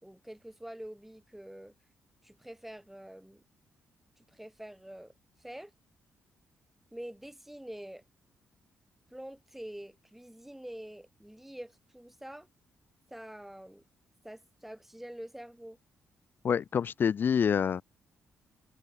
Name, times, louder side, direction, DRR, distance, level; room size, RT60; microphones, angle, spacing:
voice 1, 0.0-1.7 2.2-3.4 4.2-5.1 5.4-5.7 6.9-8.0 9.1-12.5 13.1-13.8 14.2-15.8, right 1 dB, 5° right, 3.4 m, -46 dB
voice 2, 16.4-17.8, left 7 dB, 50° left, 0.5 m, -27 dB
cardioid pair, 85°, 4 cm